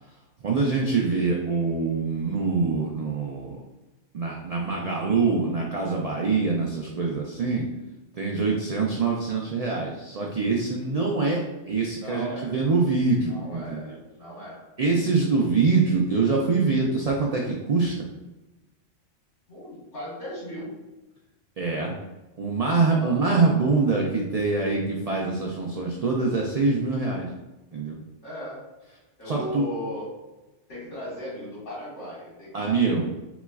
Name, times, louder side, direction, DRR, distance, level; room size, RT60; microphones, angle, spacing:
voice 1, 0.4-3.6 4.1-7.6 8.1-13.8 14.8-18.1 21.6-21.9 22.4-27.3 27.7-28.0 29.3-29.6 32.5-33.0, right 4 dB, 75° right, -1 dB, 0.3 m, -24 dB
voice 2, 12.0-12.5 13.3-14.6 19.5-20.8 23.0-23.2 28.2-28.6 29.2-30.1 30.7-32.8, equal, 85° left, -7 dB, 2.1 m, -37 dB
4.0 x 3.0 x 2.3 m, 1.0 s
omnidirectional pair, 1.2 m